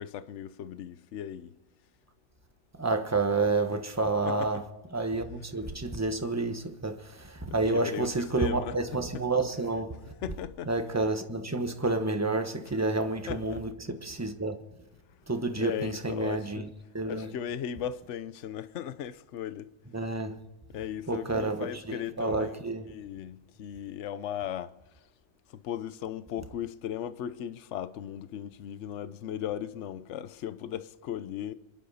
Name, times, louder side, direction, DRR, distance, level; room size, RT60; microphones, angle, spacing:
voice 1, 0.0-1.6 4.2-4.5 7.4-8.8 10.2-10.7 11.0-11.1 13.3-13.6 15.5-16.7 17.1-19.7 20.7-22.6 22.9-25.0 25.5-31.5, left 9 dB, 55° left, 0.8 m, -37 dB
voice 2, 2.8-4.6 4.9-10.0 10.7-14.6 15.3-16.7 16.9-17.3 19.9-20.4 21.1-22.9, right 3 dB, 10° right, 0.9 m, -29 dB
28.0 x 11.5 x 4.2 m
omnidirectional pair, 1.9 m